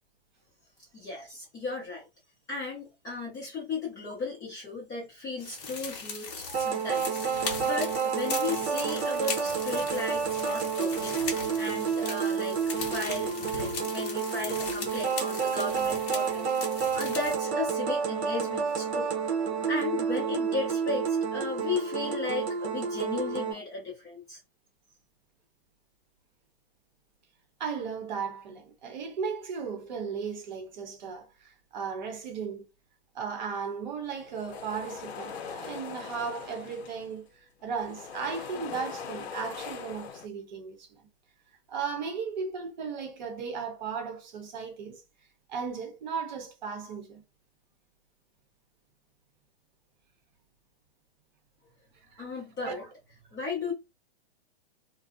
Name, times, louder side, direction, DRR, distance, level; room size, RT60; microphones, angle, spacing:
voice 1, 0.9-2.1 2.5-7.2 7.6-11.2 11.6-19.1 19.7-24.4 52.2-52.8 53.3-53.7, left 3 dB, 10° left, 0.5 m, -35 dB
sound 1, 5.4-17.4, left 5 dB, 40° left, 0.8 m, -39 dB
sound 2, 6.5-23.5, right 6 dB, 90° right, 0.8 m, -30 dB
voice 2, 27.6-32.7 33.1-37.3 37.6-41.0 41.7-45.0 45.5-47.2 52.1-52.2 52.6-52.9, right 6 dB, 45° right, 0.7 m, -36 dB
sound 3, 34.1-37.3 37.6-40.3, left 6 dB, 75° left, 0.6 m, -41 dB
2.5 x 2.0 x 2.4 m
hypercardioid pair, 155°, 32 cm